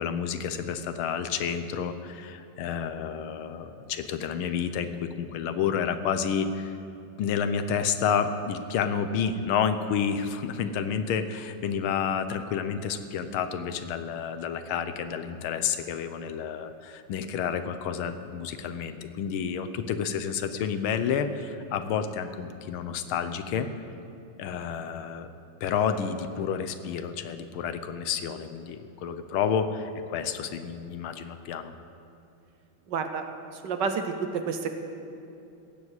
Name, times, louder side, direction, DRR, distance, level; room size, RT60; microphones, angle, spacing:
voice 1, 0.0-6.8 7.2-23.7 24.4-25.3 25.6-31.7, left 7 dB, 85° left, 10 dB, 1.6 m, -30 dB
voice 2, 32.9-33.2 33.5-34.7, right 5 dB, 65° right, 7 dB, 1.4 m, -29 dB
17.0 x 7.2 x 8.1 m, 2.7 s
omnidirectional pair, 2.3 m